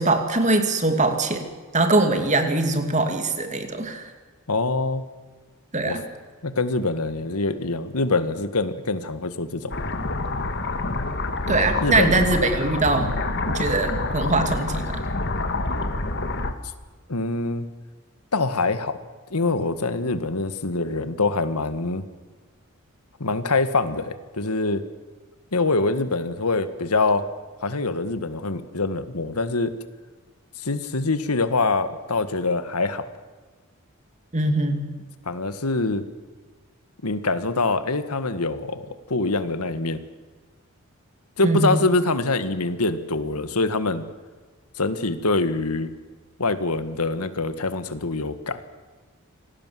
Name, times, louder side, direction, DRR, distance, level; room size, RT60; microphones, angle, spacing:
voice 1, 0.0-1.5 1.7-4.1 5.7-6.0 11.5-13.1 13.5-15.0 34.3-34.9 41.4-41.8, right 2 dB, 30° right, 6 dB, 2.6 m, -22 dB
voice 2, 4.5-5.0 5.8-6.0 6.4-9.7 11.8-12.4 17.1-17.6 18.3-19.0 19.3-22.0 23.2-24.8 25.5-27.3 27.6-29.7 30.6-33.0 35.2-36.0 37.0-40.0 41.4-44.0 44.8-45.9 46.4-48.6, left 3 dB, 85° left, 11 dB, 1.7 m, -24 dB
sound 1, 9.7-16.5, left 2 dB, 50° left, 1.8 m, -27 dB
26.5 x 18.5 x 7.7 m, 1.4 s
head